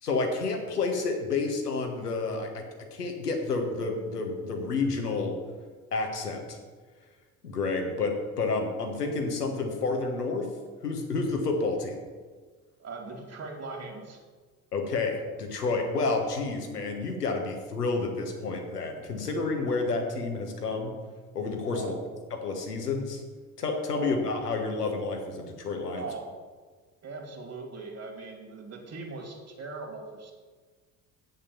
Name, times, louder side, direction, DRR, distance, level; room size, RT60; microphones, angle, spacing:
voice 1, 0.0-2.6 2.9-5.4 5.9-6.6 7.4-10.5 10.8-12.0 14.7-20.9 21.3-21.9 22.4-23.2 23.6-26.0, left 3 dB, 85° left, 3 dB, 1.4 m, -30 dB
voice 2, 12.8-14.2 21.7-22.1 23.9-24.2 25.9-26.3 27.0-30.3, right 3 dB, 35° right, 3 dB, 2.6 m, -40 dB
8.4 x 6.2 x 7.1 m, 1.4 s
figure-of-eight pair, 60°, 45 cm